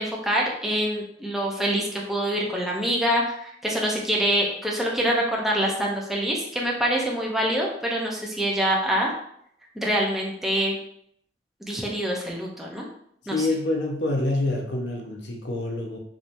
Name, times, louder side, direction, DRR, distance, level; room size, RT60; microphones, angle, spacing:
voice 1, 0.0-9.1 9.8-10.8 11.6-12.8 13.3-13.5, equal, ahead, -3 dB, 0.7 m, -25 dB
voice 2, 13.3-16.0, left 2 dB, 90° left, 1 dB, 0.8 m, -26 dB
4.7 x 2.8 x 2.6 m, 0.70 s
head